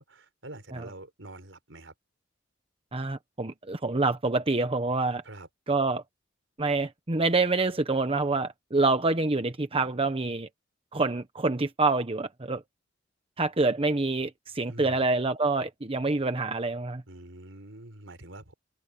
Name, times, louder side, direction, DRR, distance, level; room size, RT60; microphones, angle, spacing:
voice 1, 0.0-1.9 5.2-5.5 14.7-15.0 17.1-18.5, right 1 dB, 75° right, 5.0 m, -46 dB
voice 2, 2.9-5.2 5.7-6.0 6.6-10.5 10.9-12.6 13.4-17.0, right 3 dB, 30° right, 1.0 m, -26 dB
open air
head